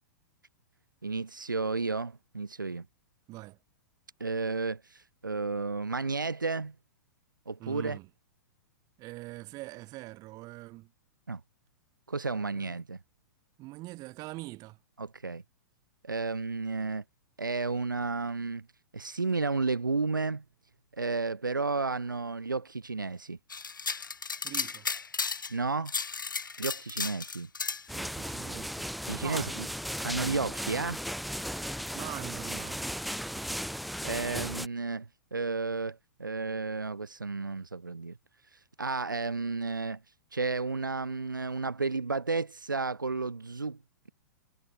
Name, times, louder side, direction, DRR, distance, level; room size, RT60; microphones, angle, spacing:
voice 1, 1.0-2.9 4.2-6.7 7.5-8.0 11.3-11.4 12.1-13.0 15.0-15.4 16.0-17.0 17.4-18.7 18.9-20.4 21.0-23.4 25.5-25.9 26.6-27.5 29.1-29.5 30.0-31.0 34.0-38.2 38.8-40.0 40.3-43.8, right 4 dB, 85° right, 2.4 m, -32 dB
voice 2, 7.6-8.1 9.0-10.9 12.5-12.7 13.6-14.8 24.4-24.9 27.9-28.9 29.2-29.7 31.9-32.8, right 20 dB, 35° right, 8.0 m, -43 dB
sound 1, 23.5-25.6 25.9-27.8, left 5 dB, 80° left, 2.1 m, -34 dB
sound 2, 27.9-34.7, equal, ahead, 2.2 m, -36 dB
figure-of-eight pair, 110°, 10 cm